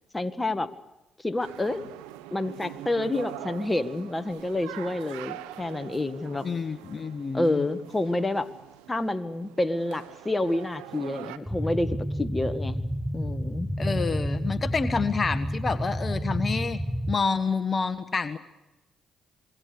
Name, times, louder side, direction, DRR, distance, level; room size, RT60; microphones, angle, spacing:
voice 1, 0.1-0.7 1.2-1.8 2.3-6.5 7.3-8.5 8.9-12.8 13.1-13.7, left 2 dB, 20° left, 9 dB, 1.7 m, -28 dB
sound 1, 1.4-11.4, right 14 dB, 85° right, 1.1 m, -43 dB
voice 2, 6.4-7.6 13.8-16.8 17.1-18.4, left 5 dB, 40° left, 10 dB, 1.4 m, -28 dB
sound 2, 11.5-17.2, equal, 10° right, 1.5 m, -30 dB
27.0 x 21.5 x 6.8 m, 1.0 s
hypercardioid pair, 50°, 0 cm